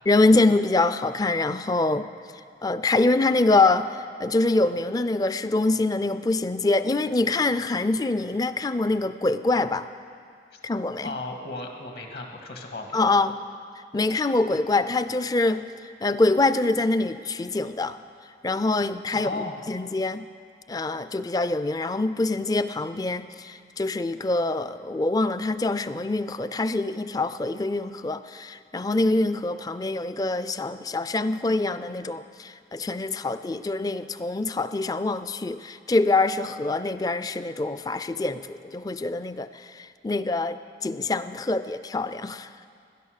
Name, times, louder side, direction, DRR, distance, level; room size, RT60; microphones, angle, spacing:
voice 1, 0.1-2.1 2.6-9.9 10.6-11.1 12.9-13.4 13.9-15.7 16.0-18.0 18.4-19.3 19.7-20.3 20.7-42.5, left 2 dB, 20° left, 13 dB, 0.4 m, -25 dB
voice 2, 11.0-13.2 19.1-19.6, left 2 dB, 65° left, 3 dB, 1.8 m, -35 dB
17.5 x 11.0 x 6.5 m, 2.3 s
head